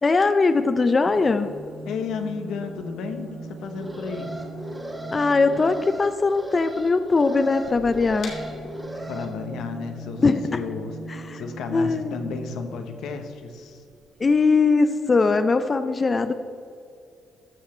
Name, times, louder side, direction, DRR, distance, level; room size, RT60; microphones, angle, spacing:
voice 1, 0.0-1.5 5.1-8.3 10.2-10.4 11.1-11.4 11.7-12.2 14.2-16.3, left 4 dB, 30° left, 10 dB, 0.5 m, -20 dB
sound 1, 1.0-5.9 7.5-13.0 14.0-14.1 14.3-14.4, right 2 dB, 75° right, 2.4 m, -40 dB
voice 2, 1.8-4.3 9.1-10.2 10.5-11.0 11.3-13.8, left 5 dB, 80° left, 6 dB, 1.1 m, -32 dB
Alarm, 3.6-9.3, equal, 15° right, 2.0 m, -37 dB
sound 2, 8.2-14.0, left 4 dB, 60° left, 2.5 m, -46 dB
14.0 x 6.4 x 4.3 m, 2.5 s
cardioid pair, 90°, 0 cm